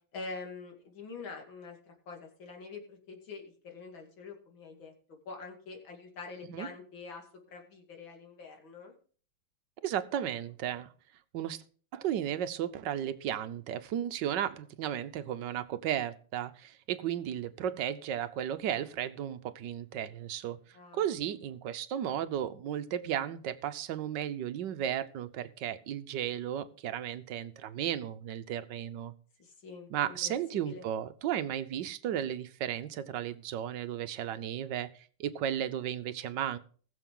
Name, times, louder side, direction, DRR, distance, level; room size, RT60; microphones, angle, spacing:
voice 1, 0.1-4.9 5.3-7.2 7.5-8.9 20.7-21.0 29.4-30.8, left 4 dB, 65° left, 2 dB, 3.2 m, -45 dB
voice 2, 9.8-10.9 11.3-11.6 11.9-20.6 20.9-29.1 29.9-34.9 35.2-36.6, right 10 dB, 65° right, 12 dB, 1.3 m, -34 dB
19.5 x 7.2 x 3.8 m, 0.43 s
omnidirectional pair, 2.4 m